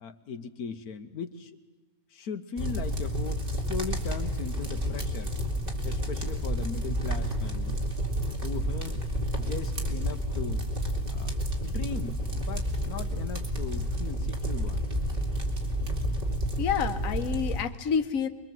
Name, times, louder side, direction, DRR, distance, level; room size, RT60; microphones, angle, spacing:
voice 1, 0.0-1.5 2.1-5.4 5.8-7.8 8.4-9.0 9.4-10.7 11.1-11.3 11.6-14.8, left 6 dB, 85° left, 7 dB, 1.6 m, -38 dB
sound 1, 2.6-17.6, equal, 35° right, 2.7 m, -30 dB
voice 2, 16.6-18.3, left 7 dB, 65° left, 8 dB, 1.5 m, -28 dB
24.5 x 23.0 x 7.7 m, 1.2 s
omnidirectional pair, 1.6 m